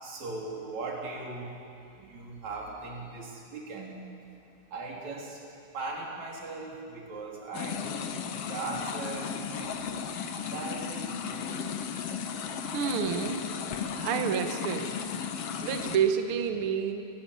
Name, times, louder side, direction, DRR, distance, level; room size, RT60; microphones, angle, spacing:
voice 1, 0.0-1.6 2.0-4.0 4.7-5.4 5.7-9.8 10.3-11.2, right 3 dB, 50° right, -2 dB, 4.3 m, -39 dB
sound 1, 7.5-16.0, left 7 dB, 75° left, 1.4 m, -35 dB
voice 2, 12.7-13.4 14.0-14.9 15.6-17.0, right 7 dB, 70° right, 6 dB, 1.3 m, -29 dB
22.0 x 14.0 x 9.9 m, 2.6 s
omnidirectional pair, 4.4 m